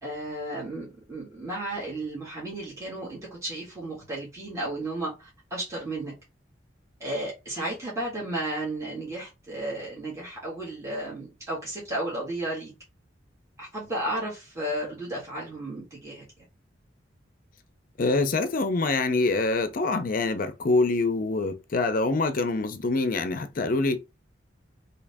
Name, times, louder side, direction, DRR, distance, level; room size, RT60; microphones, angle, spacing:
voice 1, 0.0-6.1 7.0-12.7 13.6-16.2, right 1 dB, 15° right, 1.7 m, -33 dB
voice 2, 18.0-24.0, left 3 dB, 50° left, 0.5 m, -25 dB
3.7 x 2.8 x 3.4 m
head